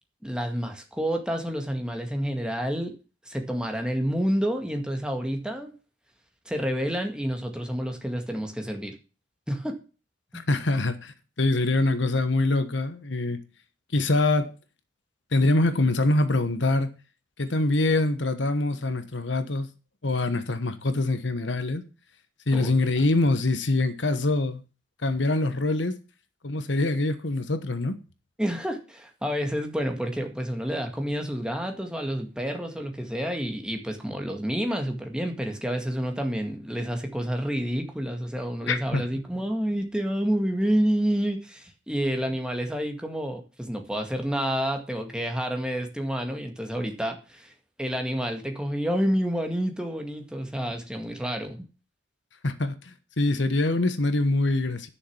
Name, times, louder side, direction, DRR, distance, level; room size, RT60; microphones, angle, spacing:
voice 1, 0.2-2.9 3.3-5.7 6.5-8.9 9.5-9.8 10.3-10.4 22.5-22.7 28.4-47.5 47.8-51.7, equal, 5° right, 1.9 m, -29 dB
voice 2, 10.5-13.4 13.9-14.5 15.3-16.9 17.4-19.7 20.0-21.8 22.5-24.6 25.0-26.0 26.4-28.0 38.7-39.0 52.4-54.9, left 2 dB, 70° left, 1.2 m, -24 dB
11.0 x 6.6 x 7.1 m
head